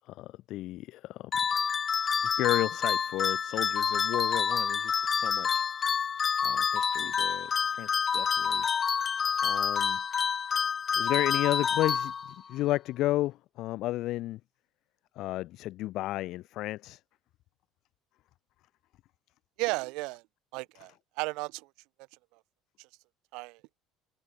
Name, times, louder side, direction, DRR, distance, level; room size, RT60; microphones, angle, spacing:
voice 1, 0.0-1.3 2.4-5.6 6.4-8.7 9.4-10.0 10.9-14.4 15.1-17.0, left 16 dB, 65° left, 6.5 m, -33 dB
sound 1, 1.3-12.5, left 7 dB, 35° left, 1.9 m, -28 dB
voice 2, 19.6-20.2 20.5-21.7 22.8-22.9 23.3-23.6, right 26 dB, 80° right, 3.7 m, -34 dB
cardioid pair, 115°, 0 cm